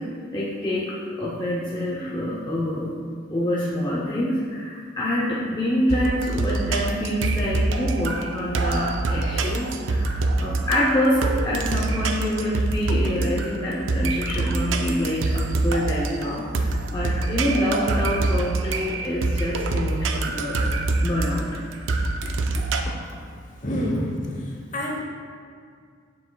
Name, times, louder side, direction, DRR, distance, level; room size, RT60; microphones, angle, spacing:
voice 1, 0.3-2.9 3.3-21.5 23.9-24.0, left 1 dB, 25° left, -7 dB, 0.6 m, -26 dB
sound 1, 5.9-22.8, right 2 dB, 80° right, 0.4 m, -25 dB
voice 2, 23.6-25.0, equal, 40° left, -1 dB, 1.0 m, -28 dB
7.4 x 6.2 x 2.3 m, 2.2 s
head